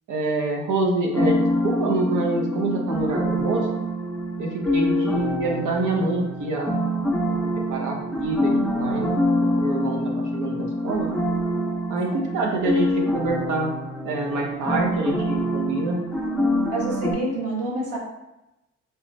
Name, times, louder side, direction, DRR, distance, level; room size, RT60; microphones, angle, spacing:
voice 1, 0.1-3.7 4.4-6.8 7.2-7.4 7.7-9.1 9.6-11.1 11.9-13.7 14.0-16.0, right 2 dB, 80° right, 1 dB, 0.9 m, -26 dB
sound 1, 1.1-17.1, equal, ahead, 0.6 m, -25 dB
voice 2, 16.7-18.0, right 1 dB, 50° right, -4 dB, 1.2 m, -28 dB
3.2 x 3.0 x 3.2 m, 0.95 s
cardioid pair, 90°, 30 cm